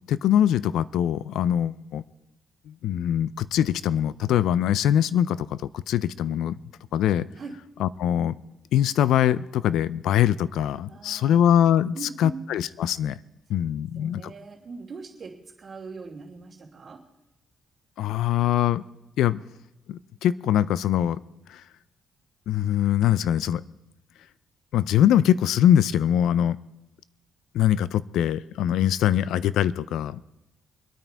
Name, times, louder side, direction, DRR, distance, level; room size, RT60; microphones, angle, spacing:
voice 1, 0.1-2.0 2.7-6.5 6.9-7.2 7.8-8.4 8.7-13.2 13.5-14.2 18.0-18.8 19.2-19.4 19.9-21.2 21.5-21.6 22.5-23.6 24.7-26.6 27.5-30.2, left 10 dB, 80° left, 18 dB, 0.5 m, -23 dB
voice 2, 10.9-11.4 11.9-12.4 13.7-17.0, right 4 dB, 40° right, -6 dB, 2.9 m, -41 dB
24.5 x 9.2 x 4.6 m, 0.94 s
cardioid pair, 90°, 0 cm